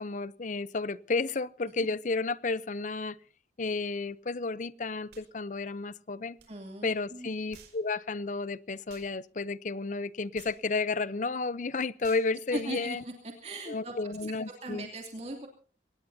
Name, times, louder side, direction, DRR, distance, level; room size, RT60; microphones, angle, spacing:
voice 1, 0.0-3.2 3.6-6.4 6.8-13.0 13.7-14.9, left 3 dB, 45° left, 0.7 m, -32 dB
sound 1, 5.1-5.3 6.4-6.5 7.5-7.8 8.9-9.1 10.3-10.6 12.0-12.3, right 6 dB, 70° right, 5.1 m, -53 dB
voice 2, 6.5-7.3 12.5-13.1 13.4-14.1 14.6-15.5, right 2 dB, 35° right, 2.8 m, -39 dB
24.0 x 19.5 x 2.7 m
head